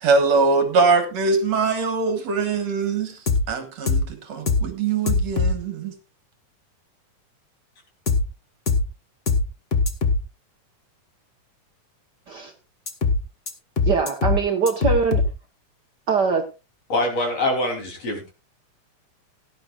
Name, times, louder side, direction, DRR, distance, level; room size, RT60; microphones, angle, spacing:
voice 1, 0.0-3.2 3.5-5.9, right 4 dB, 60° right, 7 dB, 2.6 m, -22 dB
sound 1, 3.3-3.4 3.9-4.0 4.5-4.6 5.1-5.5 8.1-8.2 8.7-8.8 9.3-9.4 9.7-10.2 12.9-13.2 13.5-13.6 13.8-14.4 14.7-15.3, left 4 dB, 70° left, 0.5 m, -20 dB
voice 2, 13.8-15.2 16.1-16.5, right 5 dB, 85° right, 4 dB, 0.9 m, -22 dB
voice 3, 16.9-18.3, left 1 dB, 50° left, 2 dB, 4.4 m, -24 dB
17.5 x 11.5 x 2.4 m, 0.28 s
omnidirectional pair, 3.7 m